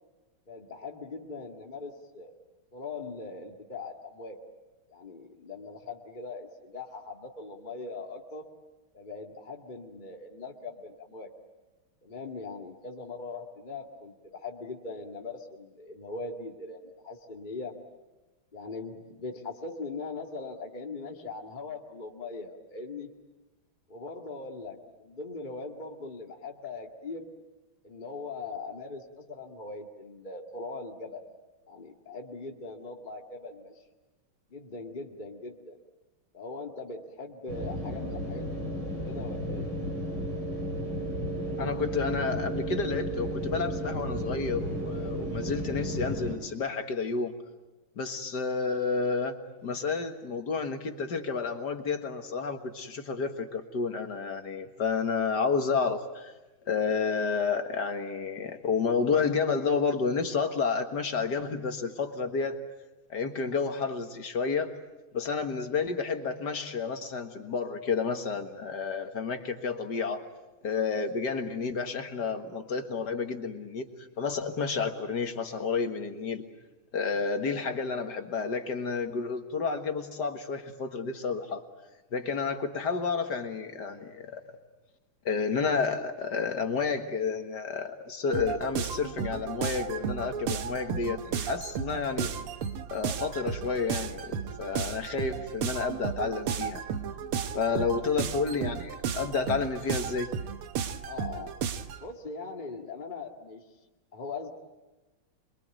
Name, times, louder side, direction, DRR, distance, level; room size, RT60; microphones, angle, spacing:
voice 1, 0.5-2.3 2.7-4.4 4.9-8.4 8.9-11.3 12.0-17.7 18.5-23.1 23.9-27.3 27.8-31.2 31.7-33.8 34.5-35.8 36.3-39.7 97.7-97.8 101.0-101.5 102.0-103.6 104.1-104.5, left 3 dB, 20° left, 1 dB, 2.1 m, -40 dB
sound 1, 37.5-46.4, equal, 50° right, 4.7 m, -33 dB
voice 2, 41.6-47.3 48.0-56.3 56.7-62.6 63.1-64.7 65.1-70.2 70.6-73.9 74.2-76.4 76.9-81.6 82.1-84.4 85.3-92.3 92.9-96.8 97.5-100.3, left 5 dB, 50° left, 6 dB, 2.1 m, -30 dB
sound 2, 88.3-102.0, right 7 dB, 80° right, 2.0 m, -34 dB
26.5 x 23.0 x 9.1 m, 1.1 s
omnidirectional pair, 2.4 m